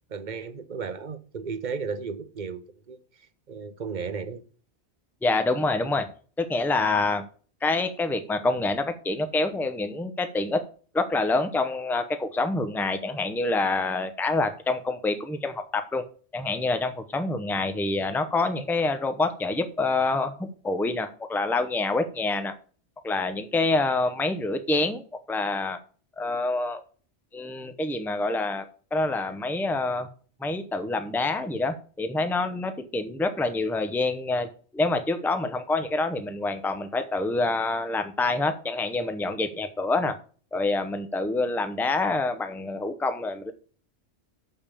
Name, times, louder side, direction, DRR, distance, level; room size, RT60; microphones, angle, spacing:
voice 1, 0.1-3.0 3.5-4.4, right 5 dB, 45° right, 0.9 m, -34 dB
voice 2, 5.2-6.1 6.4-7.2 7.6-10.6 10.9-16.0 16.3-22.5 23.0-25.0 25.3-25.8 26.2-26.8 27.3-28.6 28.9-30.1 30.4-34.5 34.7-40.1 40.5-43.5, left 3 dB, ahead, 0.7 m, -26 dB
6.8 x 5.6 x 6.9 m
omnidirectional pair, 1.1 m